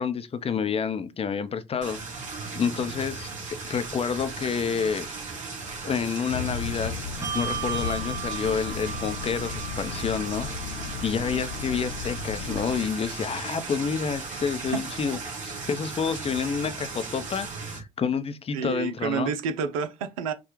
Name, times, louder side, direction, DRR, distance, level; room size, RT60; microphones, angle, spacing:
voice 1, 0.0-2.0 2.5-3.3 3.6-5.1 5.8-6.9 7.3-10.5 11.0-19.3, left 6 dB, 35° left, 0.6 m, -29 dB
sound 1, 1.8-17.8, right 4 dB, 45° right, 2.3 m, -36 dB
sound 2, 6.3-13.0, left 7 dB, 75° left, 0.4 m, -36 dB
Bell, 7.2-14.1, right 8 dB, 20° right, 0.6 m, -38 dB
voice 2, 18.5-20.3, right 6 dB, 75° right, 0.5 m, -29 dB
6.0 x 2.3 x 3.0 m
figure-of-eight pair, 50°, 18 cm